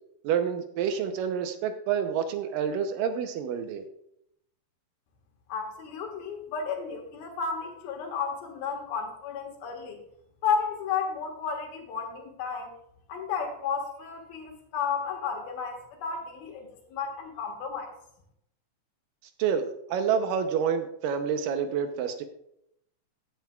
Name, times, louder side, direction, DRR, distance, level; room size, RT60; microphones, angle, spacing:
voice 1, 0.2-3.9 19.4-22.2, right 7 dB, 75° right, 7 dB, 2.2 m, -28 dB
voice 2, 5.5-10.0 10.4-12.7 13.1-17.9, left 6 dB, 80° left, 1 dB, 3.4 m, -32 dB
15.0 x 9.1 x 2.3 m, 0.76 s
omnidirectional pair, 4.2 m